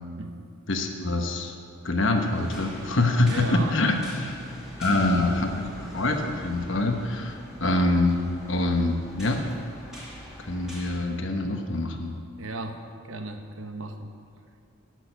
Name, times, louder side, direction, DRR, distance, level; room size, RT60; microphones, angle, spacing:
voice 1, 0.7-1.5 1.8-4.5 4.8-5.5 5.9-9.4 10.4-12.1, left 2 dB, 65° left, 4 dB, 1.2 m, -25 dB
sound 1, 2.1-11.0, equal, 5° right, 2.3 m, -43 dB
voice 2, 3.3-3.8 4.8-5.4 12.4-12.8 13.0-14.1, right 2 dB, 70° right, 6 dB, 1.0 m, -35 dB
12.5 x 6.6 x 8.1 m, 2.4 s
head